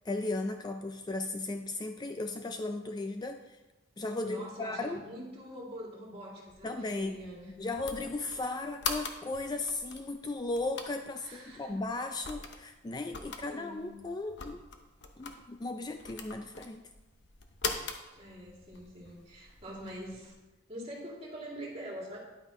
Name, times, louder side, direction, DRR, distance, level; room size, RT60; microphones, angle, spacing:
voice 1, 0.1-3.4 4.0-5.0 6.6-7.2 7.6-14.7 15.2-16.9, left 2 dB, 20° left, 6 dB, 0.4 m, -36 dB
voice 2, 4.2-7.5 11.2-11.7 13.5-13.9 18.1-20.3 20.7-22.2, equal, 30° right, -3 dB, 2.7 m, -44 dB
sound 1, 6.5-20.3, left 5 dB, 65° left, 0.9 m, -43 dB
10.5 x 9.0 x 3.1 m, 1.1 s
head